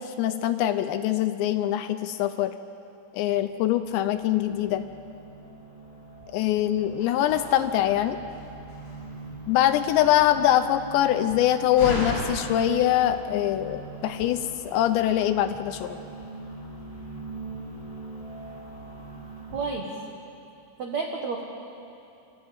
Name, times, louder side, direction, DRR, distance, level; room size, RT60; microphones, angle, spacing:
voice 1, 0.0-2.5 3.1-4.8 6.3-8.2 9.5-16.0, left 11 dB, 80° left, 9 dB, 2.7 m, -23 dB
sound 1, 3.3-19.8, right 2 dB, 5° left, 2.3 m, -43 dB
Slam, 6.3-14.0, left 1 dB, 30° left, 7.1 m, -39 dB
voice 2, 19.5-19.9 20.8-21.4, right 4 dB, 90° right, 1 dB, 1.5 m, -30 dB
29.5 x 13.5 x 8.8 m, 2.8 s
omnidirectional pair, 5.5 m